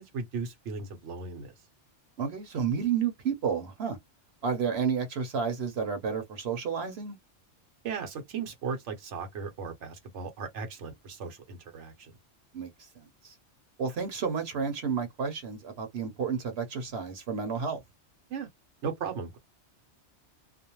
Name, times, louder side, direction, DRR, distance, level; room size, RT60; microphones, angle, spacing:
voice 1, 0.0-1.5 7.8-12.1 18.3-18.5 18.8-19.4, right 5 dB, 85° right, 1.1 m, -37 dB
voice 2, 2.2-4.0 4.4-7.2 12.5-12.9 13.2-13.3 13.8-17.8, right 6 dB, 70° right, 1.0 m, -31 dB
2.5 x 2.1 x 2.9 m
omnidirectional pair, 1.2 m